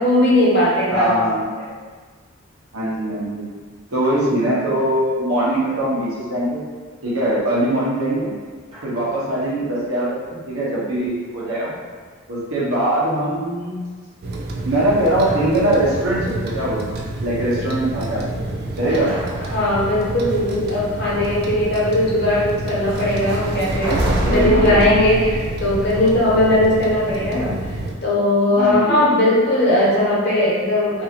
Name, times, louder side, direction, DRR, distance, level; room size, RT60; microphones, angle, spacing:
voice 1, 0.0-1.2 1.6-1.7 18.8-19.1 19.5-27.6 28.0-31.0, left 1 dB, 55° left, -6 dB, 0.8 m, -18 dB
voice 2, 0.9-1.5 2.7-3.4 3.9-6.6 7.0-8.3 8.8-11.7 12.3-13.8 14.7-18.4 18.8-19.1 24.1-24.9 28.6-29.1, right 1 dB, 85° right, -7 dB, 1.0 m, -21 dB
Drum, 8.7-9.4 11.4-12.5 15.2-16.4 19.1-20.7 23.8-26.8, equal, 25° right, 0.7 m, -37 dB
sound 1, 14.2-27.9, right 1 dB, 50° right, 0.3 m, -27 dB
2.7 x 2.5 x 2.8 m, 1.5 s
head